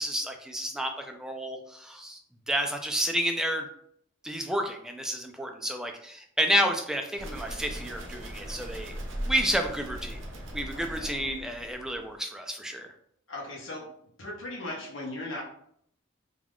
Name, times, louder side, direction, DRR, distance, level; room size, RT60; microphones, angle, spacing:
voice 1, 0.0-2.2 2.5-3.7 4.2-8.9 9.3-10.2 10.5-12.9, equal, 5° right, 3 dB, 0.3 m, -30 dB
sound 1, 7.2-12.1, equal, 70° right, 0.6 m, -39 dB
voice 2, 10.7-11.2 13.3-13.9 14.2-15.4, left 2 dB, 80° left, -3 dB, 0.7 m, -38 dB
2.4 x 2.3 x 3.4 m, 0.66 s
head